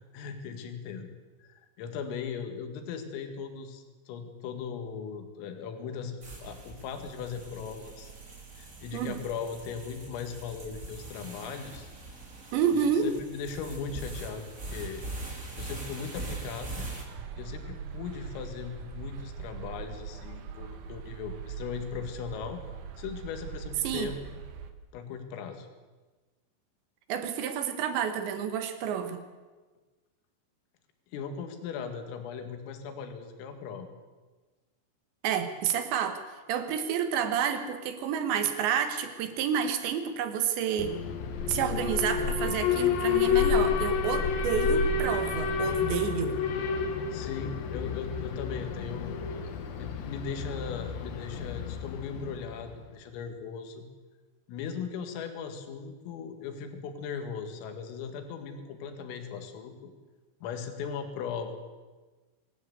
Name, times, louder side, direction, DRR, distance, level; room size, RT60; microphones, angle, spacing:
voice 1, 0.1-1.1 1.4-8.1 8.6-11.9 13.0-15.0 15.6-16.9 17.4-22.6 23.0-24.4 24.9-25.7 31.1-33.9 42.2-42.6 47.1-49.5 49.8-53.8 54.5-59.9 60.4-61.6, left 6 dB, 80° left, 6 dB, 4.6 m, -38 dB
sound 1, 6.2-17.0, right 2 dB, 20° right, 2.2 m, -42 dB
voice 2, 8.9-9.2 12.5-13.1 23.8-24.1 27.1-29.2 35.2-36.2 36.5-41.0 41.5-46.4, right 8 dB, 70° right, 8 dB, 3.5 m, -29 dB
sound 2, 17.0-24.7, right 6 dB, 85° right, 1.7 m, -41 dB
Alarm, 40.8-52.8, left 6 dB, 65° left, 2.6 m, -30 dB
24.0 x 13.5 x 8.2 m, 1.3 s
omnidirectional pair, 5.9 m